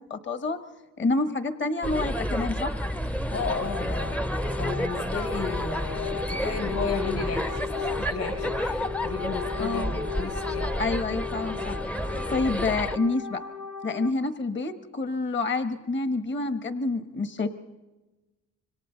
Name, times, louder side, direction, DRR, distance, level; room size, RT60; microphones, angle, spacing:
voice 1, 0.1-0.6 1.0-2.7 9.6-9.9 10.8-11.8 12.3-13.4 13.8-17.5, left 3 dB, 40° left, 9 dB, 1.3 m, -28 dB
sound 1, 1.8-13.0, equal, 5° left, 0.6 m, -30 dB
voice 2, 3.3-10.9, left 5 dB, 55° left, 1 dB, 6.5 m, -34 dB
sound 2, 3.4-14.1, left 6 dB, 80° left, 0.9 m, -36 dB
26.5 x 25.0 x 4.0 m, 1.1 s
cardioid pair, 90°, 30 cm